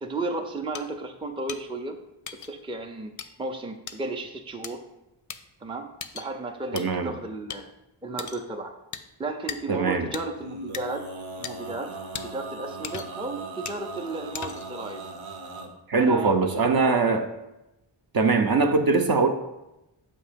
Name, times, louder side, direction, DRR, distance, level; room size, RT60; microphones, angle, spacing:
voice 1, 0.0-2.0 2.5-3.1 3.4-4.8 5.6-7.7 8.0-8.7 9.2-11.1 11.4-12.0 12.2-15.1 16.0-16.9, right 2 dB, 10° right, 4 dB, 0.5 m, -34 dB
sound 1, 0.7-0.8 1.5-1.6 2.3-2.5 3.2-3.3 3.9-4.0 4.6-4.7 5.3-5.4 6.0-6.3 6.8-6.9 7.5-7.6 8.2-8.4 8.9-9.0 9.5-9.6 10.1-10.2 10.7-10.8 11.4-11.5 12.1-12.3 12.8-13.2 13.7-13.8 14.3-14.7, left 7 dB, 40° left, 0.5 m, -36 dB
voice 2, 6.7-7.1 9.7-10.1 15.9-17.3 18.1-19.3, right 4 dB, 50° right, 5 dB, 0.7 m, -22 dB
Male singing, 10.4-15.7, right 2 dB, 75° right, 0.9 m, -39 dB
7.0 x 2.8 x 5.1 m, 0.94 s
cardioid pair, 65°, 47 cm